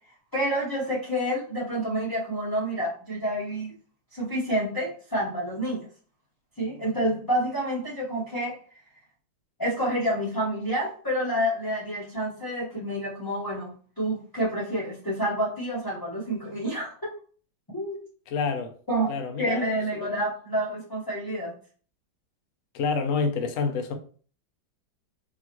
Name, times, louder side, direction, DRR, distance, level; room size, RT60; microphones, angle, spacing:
voice 1, 0.3-3.7 4.1-5.8 6.6-8.6 9.6-16.9 17.7-18.0 18.9-19.1 19.4-21.5, right 1 dB, 15° left, 0.7 m, -28 dB
voice 2, 18.3-18.7 19.1-20.2 22.7-23.9, left 4 dB, 70° left, 0.8 m, -28 dB
4.7 x 2.9 x 3.0 m
omnidirectional pair, 2.0 m